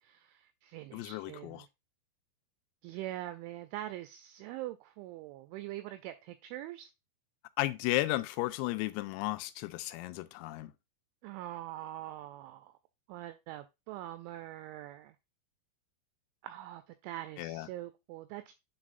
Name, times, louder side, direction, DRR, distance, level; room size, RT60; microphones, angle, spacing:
voice 1, 0.0-1.7 2.8-6.9 11.2-12.7 13.1-15.2 16.4-18.4, right 14 dB, 90° right, 2.7 m, -43 dB
voice 2, 0.9-1.7 7.6-10.7 17.4-17.7, left 18 dB, 90° left, 3.3 m, -34 dB
10.5 x 4.1 x 2.5 m
omnidirectional pair, 5.9 m